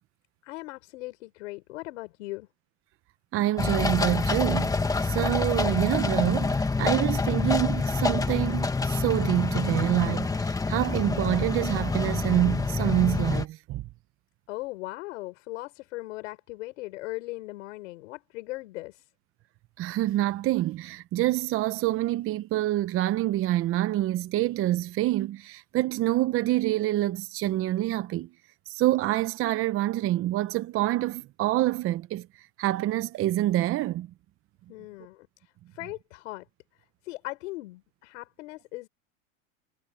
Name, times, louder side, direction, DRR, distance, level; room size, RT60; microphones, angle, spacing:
voice 1, 0.4-2.5 14.5-19.0 34.7-35.3 35.7-36.5 37.0-38.9, left 20 dB, 70° left, 5.2 m, -38 dB
voice 2, 3.3-13.8 19.8-28.3 28.7-32.3 32.6-34.1, right 15 dB, 35° right, 0.9 m, -26 dB
sound 1, 3.6-13.4, left 3 dB, 10° left, 1.5 m, -27 dB
supercardioid pair, 130°, 38 cm